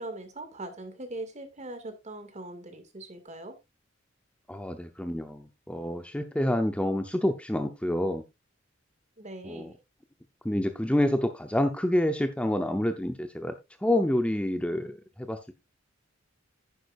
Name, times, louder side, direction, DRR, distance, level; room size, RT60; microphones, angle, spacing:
voice 1, 0.0-3.6 9.2-9.7, right 2 dB, 35° right, 2.1 m, -41 dB
voice 2, 4.5-8.2 9.4-9.7 10.4-13.5 13.8-15.5, left 1 dB, 5° left, 0.7 m, -28 dB
10.5 x 9.8 x 2.5 m
head